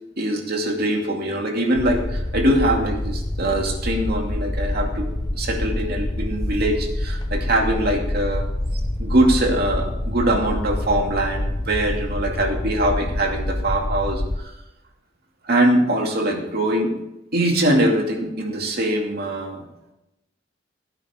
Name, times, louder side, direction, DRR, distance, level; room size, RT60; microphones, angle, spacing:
voice 1, 0.2-8.4 8.7-14.5 15.4-16.9 17.3-19.6, right 1 dB, 55° right, 1 dB, 2.5 m, -22 dB
sound 1, 1.8-14.4, left 1 dB, 25° left, 0.7 m, -26 dB
17.0 x 9.6 x 3.7 m, 0.91 s
head